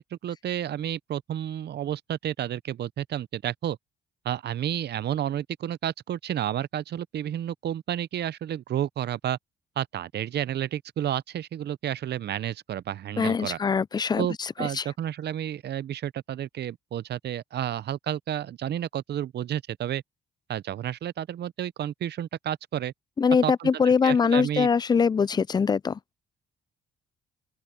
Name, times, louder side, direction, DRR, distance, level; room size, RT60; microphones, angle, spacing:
voice 1, 0.0-3.8 4.2-9.4 9.8-13.6 14.2-20.0 20.5-22.9 23.4-24.7, right 11 dB, 55° right, 0.6 m, -31 dB
voice 2, 13.2-14.8 23.2-26.0, left 6 dB, 20° left, 0.3 m, -23 dB
open air
cardioid pair, 90°, 20 cm